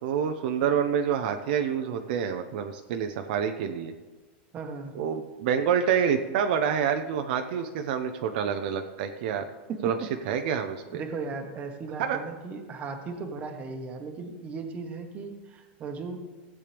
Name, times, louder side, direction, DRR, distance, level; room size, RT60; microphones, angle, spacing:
voice 1, 0.0-3.9 4.9-9.4 9.8-10.0 10.3-11.0 12.0-12.2, right 8 dB, 60° right, 6 dB, 0.7 m, -27 dB
voice 2, 4.5-4.9 9.7-9.9 10.8-16.2, right 4 dB, 25° right, 5 dB, 1.2 m, -37 dB
15.5 x 8.4 x 3.4 m, 1.3 s
supercardioid pair, 160°, 6 cm